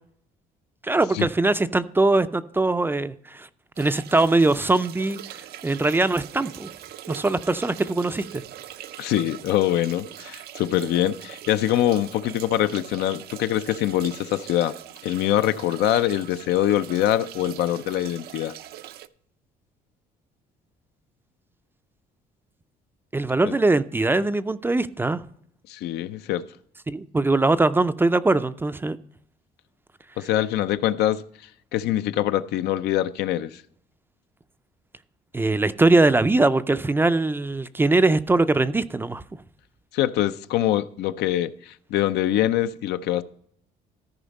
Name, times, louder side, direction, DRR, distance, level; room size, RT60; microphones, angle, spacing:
voice 1, 0.8-3.5 3.8-5.2 5.6-6.7 7.1-8.4 23.1-25.2 26.9-29.0 35.3-39.2, right 2 dB, 15° right, 0.4 m, -21 dB
sound 1, 3.8-19.1, right 12 dB, 70° right, 0.5 m, -42 dB
voice 2, 9.0-14.7 15.0-18.5 23.5-23.6 25.7-26.4 30.2-31.2 31.7-33.5 39.9-43.2, left 12 dB, 80° left, 0.5 m, -24 dB
13.5 x 5.0 x 5.3 m
cardioid pair, 110°, 17 cm